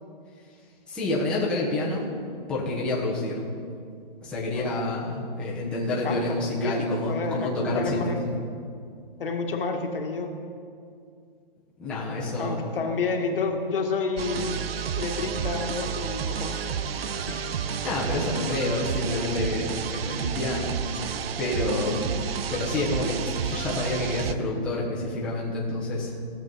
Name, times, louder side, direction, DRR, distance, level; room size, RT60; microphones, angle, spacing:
voice 1, 0.9-2.1 2.5-3.4 4.2-8.3 11.8-12.7 17.8-21.1 21.4-22.0 22.5-26.2, left 2 dB, 5° left, -7 dB, 1.1 m, -28 dB
voice 2, 5.9-8.2 9.2-10.3 12.4-16.6 17.3-17.5 21.8-22.0, left 4 dB, 70° left, 3 dB, 1.6 m, -30 dB
sound 1, 14.2-24.4, right 7 dB, 85° right, 0.7 m, -31 dB
17.0 x 7.4 x 4.0 m, 2.3 s
hypercardioid pair, 165°, 29 cm